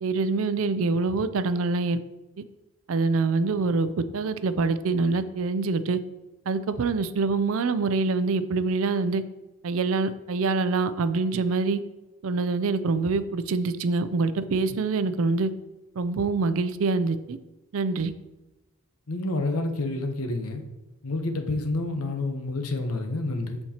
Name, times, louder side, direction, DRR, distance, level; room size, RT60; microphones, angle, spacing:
voice 1, 0.0-2.0 2.9-6.0 6.5-9.2 9.6-11.8 12.2-15.5 16.0-17.4 17.7-18.1, right 3 dB, 65° right, 12 dB, 0.4 m, -25 dB
voice 2, 19.1-20.6 21.0-23.6, left 2 dB, 75° left, 6 dB, 0.9 m, -28 dB
13.0 x 4.4 x 2.9 m, 1.0 s
head